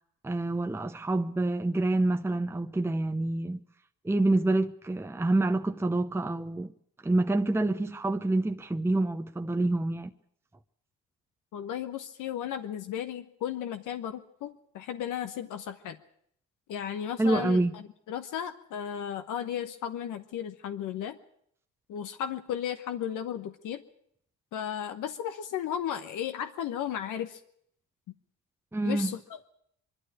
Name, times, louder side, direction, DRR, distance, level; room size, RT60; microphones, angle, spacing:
voice 1, 0.2-3.6 4.0-6.7 7.0-10.1 17.2-17.7 28.7-29.1, right 2 dB, 10° right, 0.8 m, -27 dB
voice 2, 11.5-16.0 16.7-21.2 21.9-23.8 24.5-27.4 28.8-29.5, left 9 dB, 85° left, 1.1 m, -35 dB
23.0 x 12.0 x 9.8 m
cardioid pair, 90°, 30 cm